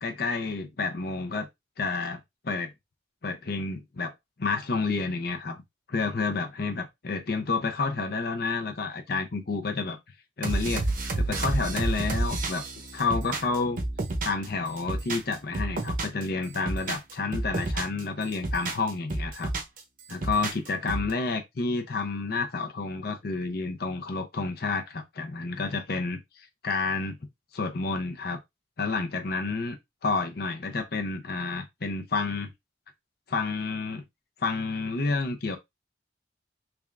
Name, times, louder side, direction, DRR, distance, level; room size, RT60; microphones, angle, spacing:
voice 1, 0.0-1.5 1.8-2.7 3.2-4.1 4.4-5.6 5.9-10.0 10.4-10.9 11.1-12.6 12.9-13.8 14.2-19.5 20.1-27.2 27.5-28.4 28.8-29.8 30.0-32.5 33.3-34.0 34.4-35.6, left 4 dB, 60° left, 0.6 m, -30 dB
sound 1, 10.4-14.5 14.8-16.2 16.5-18.0 18.3-19.8 20.1-21.1, right 2 dB, 50° right, 0.8 m, -30 dB
3.5 x 3.3 x 2.4 m
head